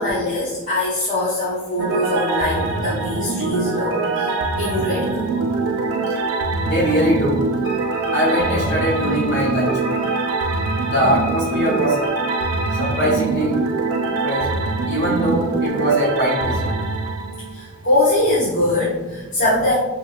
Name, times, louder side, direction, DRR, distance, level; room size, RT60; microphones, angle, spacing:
voice 1, 0.0-5.2 17.5-19.7, left 1 dB, 40° left, -9 dB, 0.6 m, -22 dB
sound 1, 1.8-17.9, right 3 dB, 75° right, 0.3 m, -23 dB
voice 2, 6.4-7.4 8.1-10.0 10.8-12.0 12.8-13.5 14.2-14.5 14.9-16.7, equal, 55° left, -5 dB, 1.0 m, -21 dB
Wind instrument woodwind instrument, 7.6-13.1, left 1 dB, 80° left, 1.5 m, -32 dB
2.7 x 2.4 x 2.7 m, 1.1 s
head